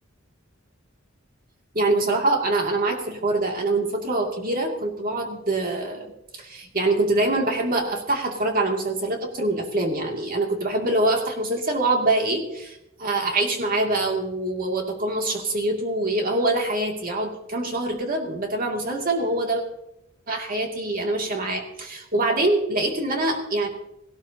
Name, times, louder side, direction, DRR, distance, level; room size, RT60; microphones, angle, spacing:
voice 1, 1.7-19.6 20.3-23.7, right 2 dB, 45° right, 1 dB, 2.5 m, -24 dB
18.0 x 16.5 x 2.9 m, 0.88 s
head